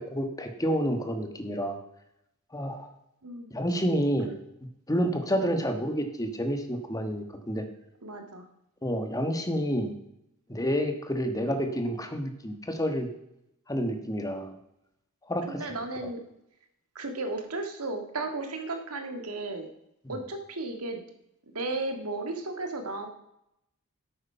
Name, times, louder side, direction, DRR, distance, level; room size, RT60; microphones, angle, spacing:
voice 1, 0.0-1.8 2.5-2.9 3.5-4.3 4.9-7.6 8.8-9.9 10.5-13.1 13.7-14.5 15.3-15.6 20.0-20.2, equal, 15° left, 6 dB, 1.4 m, -29 dB
voice 2, 8.0-8.5 15.5-16.2 17.0-19.7 20.1-21.0 21.5-23.1, right 2 dB, 85° right, 5 dB, 1.9 m, -34 dB
11.0 x 8.5 x 5.7 m, 0.81 s
head